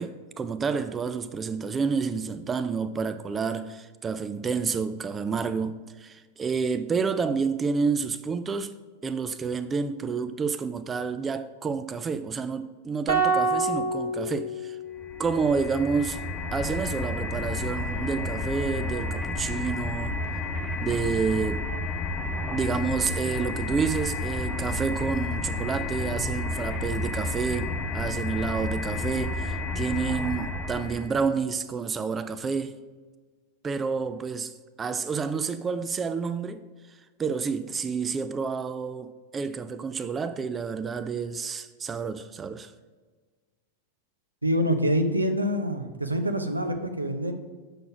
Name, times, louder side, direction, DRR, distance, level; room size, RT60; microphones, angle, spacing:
voice 1, 0.0-8.7 9.0-14.8 15.2-16.2 16.5-20.2 20.8-21.7 22.5-32.8 33.6-42.7, right 5 dB, 20° right, 0.3 m, -29 dB
sound 1, 13.1-15.4, right 3 dB, 65° right, 1.2 m, -27 dB
sound 2, 15.0-31.2, left 2 dB, 20° left, 0.8 m, -31 dB
voice 2, 44.4-47.3, equal, 85° right, 0.6 m, -26 dB
6.6 x 5.9 x 4.7 m
figure-of-eight pair, 90°, 0 cm